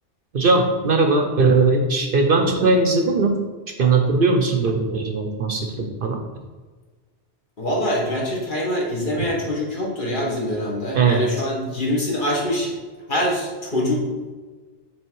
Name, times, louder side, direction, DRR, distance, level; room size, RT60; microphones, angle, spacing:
voice 1, 0.3-3.3 3.8-6.2 9.2-9.3 10.9-11.2, right 3 dB, 55° right, 3 dB, 0.8 m, -19 dB
voice 2, 7.6-12.7 13.1-14.0, equal, 45° left, -3 dB, 1.6 m, -24 dB
6.2 x 3.8 x 4.6 m, 1.3 s
omnidirectional pair, 1.2 m